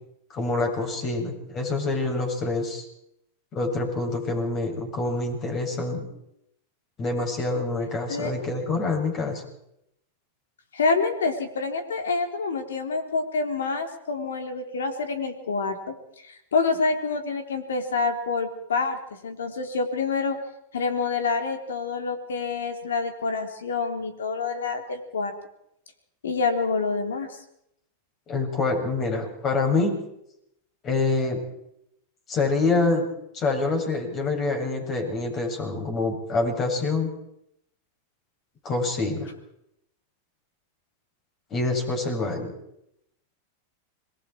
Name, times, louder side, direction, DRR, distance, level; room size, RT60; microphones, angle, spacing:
voice 1, 0.3-2.8 3.5-6.0 7.0-9.4 28.3-30.0 30.8-31.4 32.3-33.1 33.3-37.1 38.6-39.3 41.5-42.5, left 3 dB, 35° left, 2 dB, 7.8 m, -26 dB
voice 2, 10.7-15.8 16.2-20.4 20.7-25.3 26.2-27.3, left 4 dB, 85° left, 6 dB, 3.7 m, -27 dB
27.0 x 21.5 x 4.6 m, 0.78 s
hypercardioid pair, 110°, 0 cm